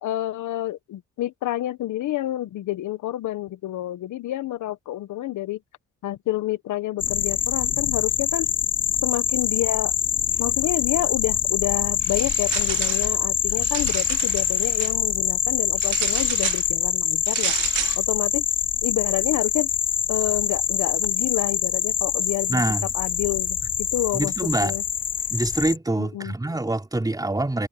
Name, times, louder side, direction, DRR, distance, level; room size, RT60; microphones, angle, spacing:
voice 1, 0.0-5.6 6.0-8.5 9.0-9.9 10.4-17.5 18.0-18.4 18.8-19.7 20.1-22.6 22.9-24.8 26.0-26.3, left 14 dB, 80° left, 1.2 m, -28 dB
sound 1, 7.0-25.8, left 8 dB, 30° left, 0.4 m, -25 dB
sound 2, 12.0-13.1 13.5-14.9 15.8-16.7 17.3-18.0, right 15 dB, 90° right, 1.0 m, -31 dB
voice 2, 22.5-22.9 24.1-24.8 25.3-27.7, right 2 dB, 10° right, 3.7 m, -25 dB
cardioid pair, 90°, 30 cm